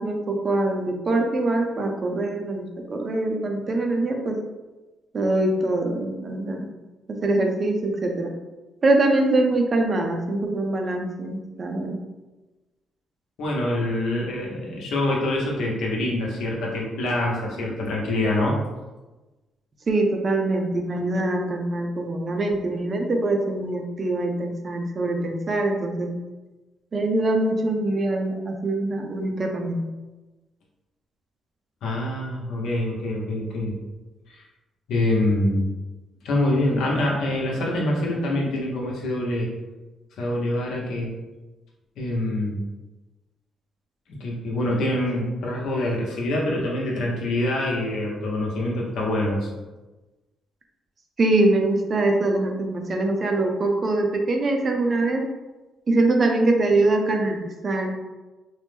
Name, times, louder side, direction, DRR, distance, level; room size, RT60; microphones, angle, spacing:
voice 1, 0.0-4.4 5.1-6.7 7.1-8.3 8.8-12.0 19.9-26.1 26.9-29.8 51.2-55.2 55.9-57.9, right 2 dB, 40° right, 3 dB, 0.5 m, -23 dB
voice 2, 13.4-18.6 31.8-33.7 34.3-34.4 34.9-35.7 36.2-39.5 40.2-41.1 42.0-42.6 44.1-49.5, left 1 dB, 80° left, -3 dB, 0.8 m, -25 dB
3.0 x 2.0 x 3.4 m, 1.1 s
cardioid pair, 90°, 0 cm